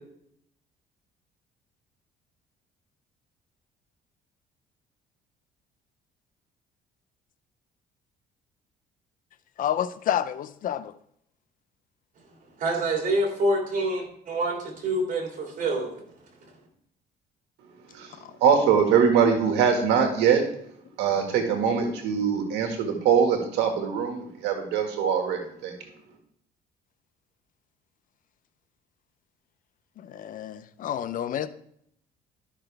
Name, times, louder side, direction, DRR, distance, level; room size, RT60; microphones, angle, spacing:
voice 1, 9.6-10.9 30.1-31.5, left 10 dB, 55° left, 0.5 m, -29 dB
voice 2, 12.6-15.9 16.4-16.5, right 1 dB, 50° right, 3.2 m, -26 dB
voice 3, 18.4-20.4 21.0-25.7, right 7 dB, 90° right, 1.7 m, -22 dB
12.0 x 6.1 x 3.3 m
cardioid pair, 110°, 17 cm